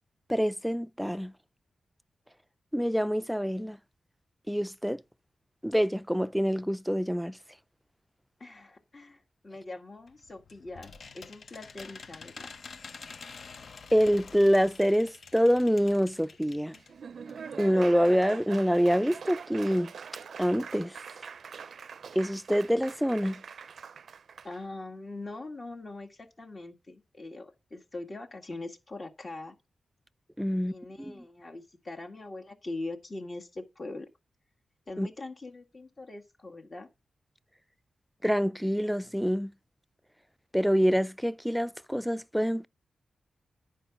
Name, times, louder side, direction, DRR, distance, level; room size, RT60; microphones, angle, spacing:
voice 1, 0.3-1.3 2.7-3.8 4.5-5.0 5.6-7.4 13.9-16.7 17.6-19.9 20.4-21.0 22.2-23.4 30.4-30.7 31.0-31.1 35.0-35.1 38.2-39.5 40.5-42.7, equal, ahead, 0.4 m, -26 dB
voice 2, 8.4-12.5 24.4-29.6 30.6-34.1 34.9-36.9, left 2 dB, 40° left, 1.8 m, -42 dB
sound 1, 10.1-17.0 17.3-17.4 17.6-17.7, left 5 dB, 60° left, 0.7 m, -48 dB
Laughter / Applause, 16.7-24.6, right 6 dB, 70° right, 0.4 m, -43 dB
10.0 x 5.1 x 5.8 m
wide cardioid pair, 95°, 0 cm